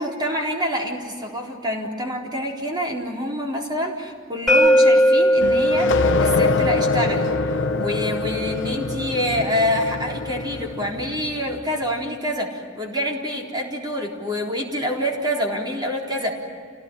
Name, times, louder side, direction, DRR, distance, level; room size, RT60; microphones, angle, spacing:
voice 1, 0.0-7.3 7.7-16.3, equal, 20° right, 0 dB, 4.0 m, -26 dB
sound 1, 4.5-10.3, equal, ahead, 4.8 m, -21 dB
sound 2, 5.4-11.8, left 4 dB, 60° left, 0.8 m, -25 dB
29.0 x 18.0 x 10.0 m, 2.2 s
head